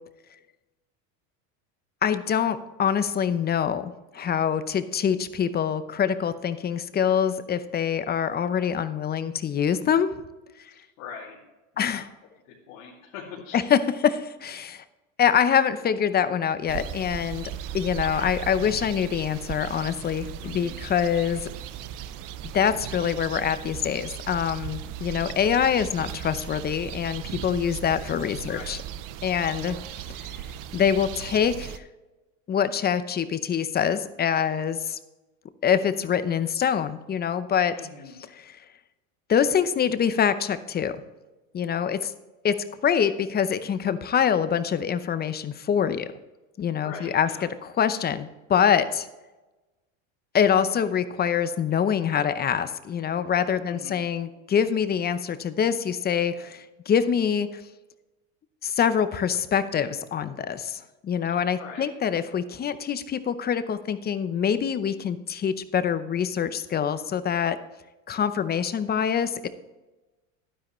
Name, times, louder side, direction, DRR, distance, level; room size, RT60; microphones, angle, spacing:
voice 1, 2.0-10.1 11.8-12.1 13.5-14.8 15.2-21.4 22.5-28.8 29.2-29.8 30.7-31.8 32.5-35.0 35.6-37.7 39.3-41.0 41.5-42.1 42.4-42.5 42.8-46.1 46.6-47.3 47.8-49.1 50.3-57.5 58.6-67.6 68.1-69.5, left 8 dB, 25° left, 12 dB, 0.7 m, -25 dB
voice 2, 11.0-11.4 11.7-12.0 12.4-13.6 20.4-20.8 28.5-28.7 37.7-38.2 46.8-47.5 53.7-54.1 61.2-61.9, left 6 dB, 80° left, -5 dB, 2.8 m, -42 dB
sound 1, 16.7-31.8, right 10 dB, 55° right, 0.7 m, -37 dB
11.5 x 10.0 x 3.1 m, 1.1 s
supercardioid pair, 115°, 40 cm